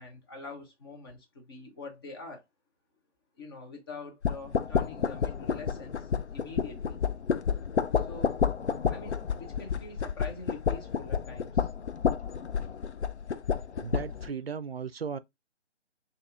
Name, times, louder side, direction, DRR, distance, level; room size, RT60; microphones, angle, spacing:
voice 1, 0.0-2.4 3.4-7.0 8.0-8.3 8.9-11.7, left 3 dB, 20° left, 0.9 m, -45 dB
sound 1, 4.2-14.3, left 7 dB, 65° left, 0.6 m, -30 dB
voice 2, 13.8-15.2, right 6 dB, 55° right, 0.5 m, -36 dB
6.4 x 2.8 x 2.5 m
figure-of-eight pair, 155°, 36 cm